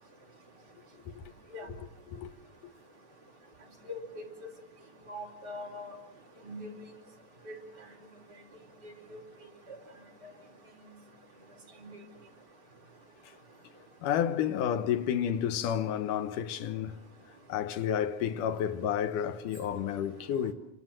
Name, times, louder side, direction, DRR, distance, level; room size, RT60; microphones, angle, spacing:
voice 1, 1.8-2.3 14.0-17.0 17.5-20.5, left 9 dB, 90° left, 2.7 m, -31 dB
voice 2, 3.9-4.3 5.1-5.9 6.4-6.7 7.5-7.6 9.1-9.2 11.8-11.9, left 1 dB, 30° right, 4.9 m, -41 dB
27.0 x 25.0 x 7.6 m
omnidirectional pair, 3.6 m